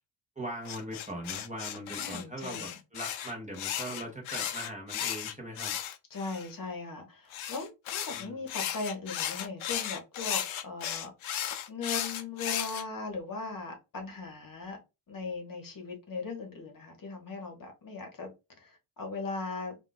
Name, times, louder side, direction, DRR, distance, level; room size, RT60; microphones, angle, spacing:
voice 1, 0.4-5.7 8.1-8.4, right 1 dB, 15° right, 0.7 m, -40 dB
sound 1, 0.7-6.5 7.3-12.8, left 10 dB, 70° left, 0.5 m, -35 dB
voice 2, 2.0-2.8 6.1-11.4 11.7-14.8 15.1-18.3 18.6-19.8, left 3 dB, 40° left, 0.9 m, -39 dB
2.4 x 2.2 x 3.8 m
wide cardioid pair, 130°, 50 cm